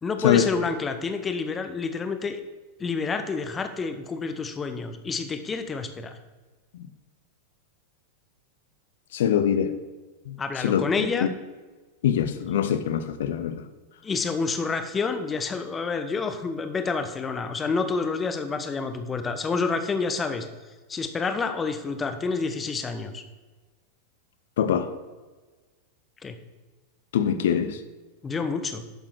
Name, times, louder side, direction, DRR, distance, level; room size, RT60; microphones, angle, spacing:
voice 1, 0.0-2.4 2.8-6.2 10.4-11.3 14.0-20.5 20.9-23.2 26.2-26.3 28.2-28.8, left 4 dB, 20° left, 8 dB, 1.1 m, -28 dB
voice 2, 9.1-9.7 10.3-11.3 12.0-13.6 24.6-24.9 27.1-27.8, left 9 dB, 60° left, 11 dB, 0.9 m, -24 dB
11.0 x 7.4 x 4.7 m, 1.3 s
figure-of-eight pair, 90°, 0 cm